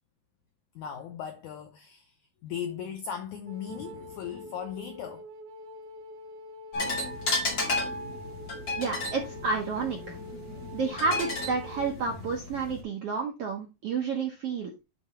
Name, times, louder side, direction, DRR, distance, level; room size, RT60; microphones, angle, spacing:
voice 1, 0.7-2.1 2.4-5.3, left 8 dB, 90° left, 1.7 m, -37 dB
Wind instrument woodwind instrument, 3.5-11.9, equal, 90° right, 1.5 m, -45 dB
sound 1, 6.7-12.8, left 2 dB, 35° left, 2.4 m, -33 dB
voice 2, 8.8-10.2 10.7-14.8, right 4 dB, 70° right, 1.4 m, -30 dB
9.4 x 3.6 x 4.3 m
omnidirectional pair, 4.3 m